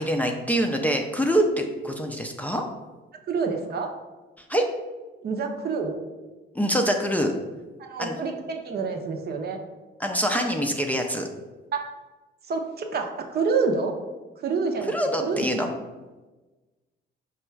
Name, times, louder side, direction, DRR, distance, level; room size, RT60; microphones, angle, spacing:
voice 1, 0.0-2.6 4.4-4.7 6.5-7.3 8.0-8.2 10.0-11.3 14.9-15.7, equal, 10° left, 2 dB, 0.4 m, -25 dB
voice 2, 3.3-3.9 5.2-6.0 7.8-9.6 11.7-11.8 12.4-13.9 14.4-14.9 15.2-15.5, right 4 dB, 55° right, 4 dB, 0.6 m, -27 dB
5.1 x 2.3 x 4.4 m, 1.2 s
cardioid pair, 90°, 20 cm